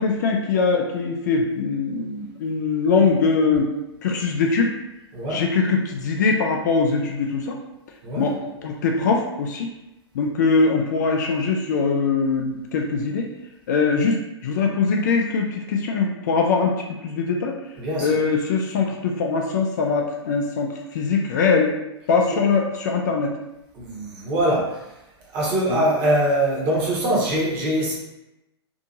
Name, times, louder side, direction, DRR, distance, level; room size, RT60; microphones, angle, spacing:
voice 1, 0.0-3.7 4.0-4.7 5.3-7.6 8.2-8.4 8.6-9.7 10.2-13.3 13.7-14.2 14.4-16.7 17.0-17.5 18.0-21.7 22.1-23.3 25.7-25.9, left 4 dB, 40° left, 1 dB, 0.4 m, -22 dB
voice 2, 5.1-5.4 8.0-8.3 17.8-18.2 22.3-22.4 23.7-24.8 25.3-27.9, right 1 dB, 30° right, -4 dB, 0.9 m, -23 dB
2.7 x 2.6 x 2.6 m, 0.93 s
figure-of-eight pair, 110°, 14 cm